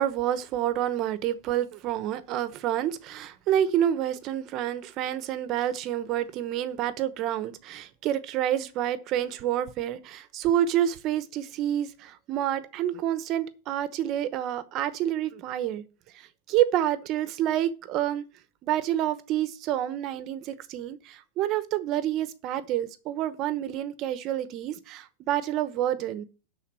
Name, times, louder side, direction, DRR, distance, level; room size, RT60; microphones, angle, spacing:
voice 1, 0.0-15.8 16.1-18.2 18.6-26.2, right 11 dB, 35° right, 0.9 m, -28 dB
11.5 x 4.0 x 7.4 m
supercardioid pair, 150°, 0 cm